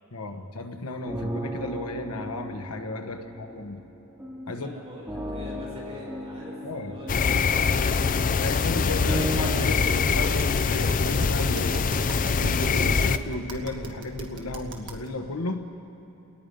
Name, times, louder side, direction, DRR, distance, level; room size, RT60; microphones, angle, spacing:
voice 1, 0.1-3.8 4.5-4.8 6.6-6.9 8.1-11.8 12.3-15.6, left 2 dB, 80° left, 5 dB, 1.3 m, -34 dB
sound 1, 1.0-10.1, equal, 10° right, 3.8 m, -36 dB
voice 2, 4.5-8.0, equal, 30° right, -6 dB, 6.9 m, -43 dB
sound 2, 7.1-13.2, left 5 dB, 40° left, 0.5 m, -23 dB
Tap, 10.1-15.1, right 1 dB, 55° right, 1.9 m, -39 dB
29.5 x 19.0 x 5.4 m, 2.9 s
head